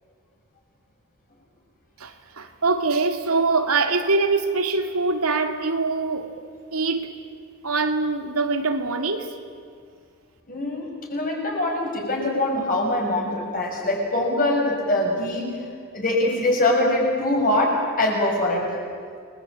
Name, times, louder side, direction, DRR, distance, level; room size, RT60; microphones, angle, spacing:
voice 1, 2.0-6.3 6.7-7.1 7.6-9.4, right 3 dB, 90° right, 2.5 m, -23 dB
voice 2, 10.5-18.8, left 1 dB, 40° left, 6.9 m, -23 dB
30.0 x 22.0 x 8.8 m
head